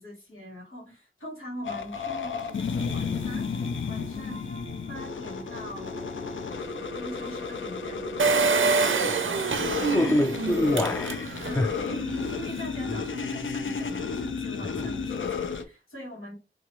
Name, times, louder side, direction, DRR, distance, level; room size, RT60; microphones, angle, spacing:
voice 1, 0.0-4.6 4.9-6.0 6.9-10.1 11.4-16.4, equal, 90° left, 1.5 m, -42 dB
sound 1, 1.6-15.6, left 5 dB, 70° left, 0.5 m, -33 dB
sound 2, 2.3-9.3, right 2 dB, 35° left, 1.1 m, -42 dB
Engine, 8.2-11.7 12.1-12.2 12.4-12.5, right 4 dB, 75° right, 0.4 m, -26 dB
voice 2, 9.9-11.7 14.8-14.9, left 1 dB, 10° left, 0.3 m, -26 dB
2.9 x 2.6 x 2.9 m
wide cardioid pair, 45°, 20 cm